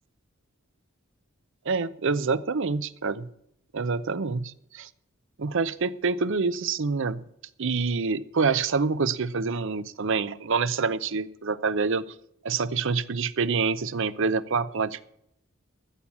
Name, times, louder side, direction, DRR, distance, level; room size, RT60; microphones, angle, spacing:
voice 1, 1.7-3.3 3.7-4.9 5.4-7.2 7.6-12.0 12.4-15.0, right 4 dB, 60° right, 15 dB, 0.6 m, -26 dB
14.0 x 7.1 x 7.2 m, 0.75 s
head